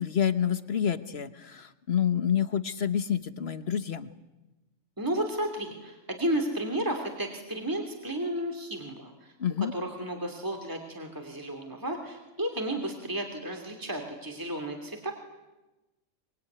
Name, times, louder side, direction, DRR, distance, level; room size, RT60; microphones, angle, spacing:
voice 1, 0.0-4.1 9.4-9.7, left 8 dB, 50° left, 12 dB, 1.4 m, -28 dB
voice 2, 5.0-15.1, right 1 dB, 15° right, 3 dB, 2.9 m, -33 dB
25.0 x 23.0 x 9.5 m, 1.0 s
omnidirectional pair, 1.4 m